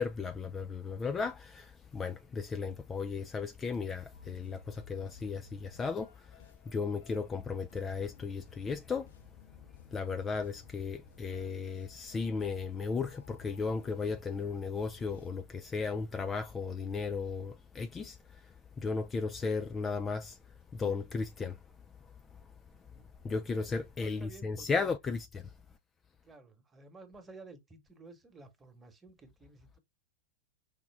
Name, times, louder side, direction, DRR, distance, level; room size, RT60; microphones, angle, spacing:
voice 1, 0.0-6.1 6.7-9.1 9.9-18.2 18.8-20.4 20.7-21.6 23.2-25.4, left 4 dB, 20° left, 0.4 m, -35 dB
sound 1, 4.1-15.3, left 6 dB, 60° left, 0.7 m, -57 dB
voice 2, 24.0-24.9 26.2-29.8, right 3 dB, 15° right, 1.3 m, -53 dB
5.0 x 2.3 x 3.4 m
figure-of-eight pair, 90°, 0 cm